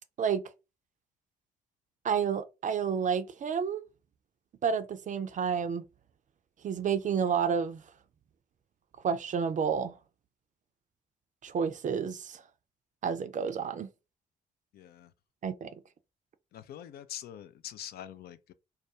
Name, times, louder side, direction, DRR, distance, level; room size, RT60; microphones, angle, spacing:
voice 1, 2.0-3.8 4.6-5.8 6.6-7.8 9.0-10.0 11.4-12.4 13.0-13.9 15.4-15.7, right 7 dB, 40° right, 0.5 m, -30 dB
voice 2, 14.7-15.1 16.5-18.5, left 11 dB, 55° left, 0.4 m, -44 dB
2.3 x 2.2 x 2.8 m
hypercardioid pair, 45°, 20 cm